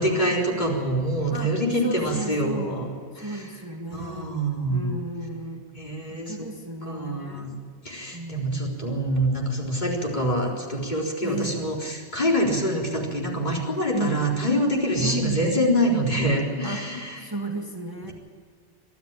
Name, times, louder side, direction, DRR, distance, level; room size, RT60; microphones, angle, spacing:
voice 1, 0.0-2.9 3.2-3.4 3.9-4.9 5.7-6.5 6.8-7.5 7.8-17.2, equal, 40° left, -2 dB, 4.2 m, -25 dB
voice 2, 1.3-2.8 3.1-4.3 4.7-5.6 6.1-7.5 8.1-8.8 11.2-11.6 13.9-14.3 15.0-15.4 16.6-18.1, right 1 dB, 20° right, 1 dB, 2.0 m, -34 dB
23.5 x 13.0 x 9.0 m, 2.1 s
omnidirectional pair, 1.1 m